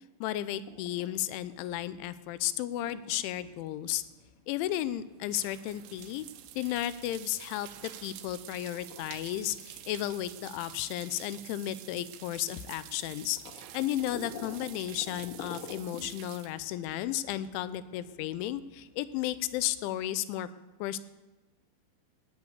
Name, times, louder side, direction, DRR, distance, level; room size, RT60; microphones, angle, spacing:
voice 1, 0.2-4.0 4.5-6.3 6.6-20.5 20.8-21.0, left 13 dB, 85° left, 15 dB, 3.0 m, -34 dB
sound 1, 0.6-20.0, left 4 dB, 50° left, 3.1 m, -52 dB
sound 2, 4.5-17.7, right 13 dB, 85° right, 3.4 m, -49 dB
17.0 x 9.8 x 8.0 m, 1.1 s
omnidirectional pair, 5.5 m